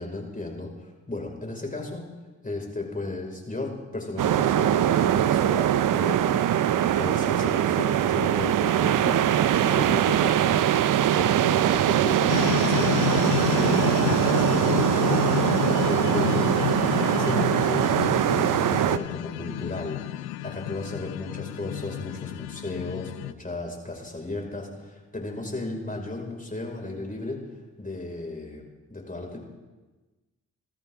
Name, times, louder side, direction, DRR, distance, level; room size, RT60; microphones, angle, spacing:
voice 1, 0.0-2.1 2.4-10.7 11.1-12.4 12.7-15.4 15.9-27.4 27.8-28.6 28.9-29.4, left 2 dB, 25° left, 1 dB, 5.3 m, -35 dB
sound 1, 4.2-19.0, right 11 dB, 60° right, 0.7 m, -22 dB
sound 2, 12.3-23.3, left 16 dB, 85° left, 0.5 m, -29 dB
24.0 x 13.5 x 3.7 m, 1.2 s
hypercardioid pair, 45°, 35 cm